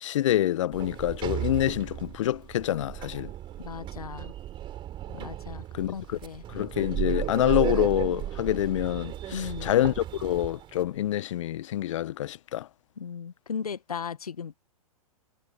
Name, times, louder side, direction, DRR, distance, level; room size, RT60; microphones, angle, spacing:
voice 1, 0.0-3.3 5.1-5.3 5.8-5.9 6.5-12.7, left 13 dB, 55° left, 1.1 m, -27 dB
Sliding door, 0.7-10.9, right 12 dB, 25° right, 3.6 m, -35 dB
voice 2, 3.6-4.3 5.2-6.4 9.3-9.7 13.0-14.6, left 6 dB, 75° left, 1.8 m, -37 dB
figure-of-eight pair, 115°, 19 cm